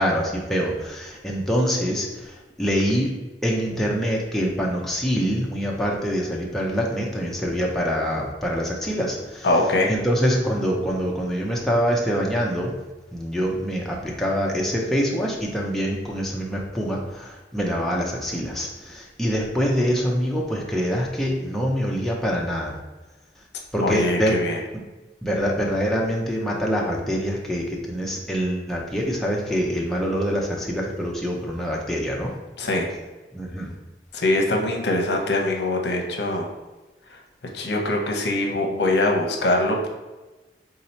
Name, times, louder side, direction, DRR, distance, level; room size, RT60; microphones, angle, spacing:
voice 1, 0.0-2.3 2.6-3.1 3.4-9.5 9.9-12.7 13.1-22.8 23.7-24.3 25.2-32.3 33.3-33.7, equal, ahead, -3 dB, 0.5 m, -25 dB
voice 2, 9.4-9.9 23.8-24.6 32.6-32.9 34.1-36.5 37.1-37.2 37.5-39.9, left 2 dB, 70° left, 2 dB, 0.7 m, -23 dB
3.8 x 2.8 x 4.2 m, 1.1 s
head